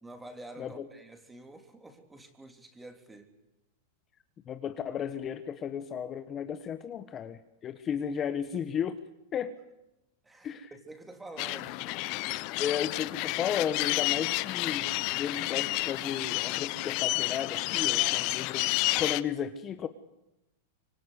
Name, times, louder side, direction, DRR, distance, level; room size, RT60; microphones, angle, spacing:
voice 1, 0.0-3.3 10.2-12.0 17.8-18.4, right 2 dB, 10° right, 6 dB, 3.4 m, -48 dB
voice 2, 4.5-9.0 9.3-9.5 10.4-10.7 12.6-18.6 18.9-19.9, left 8 dB, 25° left, 9 dB, 1.3 m, -34 dB
sound 1, 11.4-19.2, left 21 dB, 45° left, 0.9 m, -30 dB
25.5 x 24.0 x 8.3 m, 0.92 s
supercardioid pair, 140°, 0 cm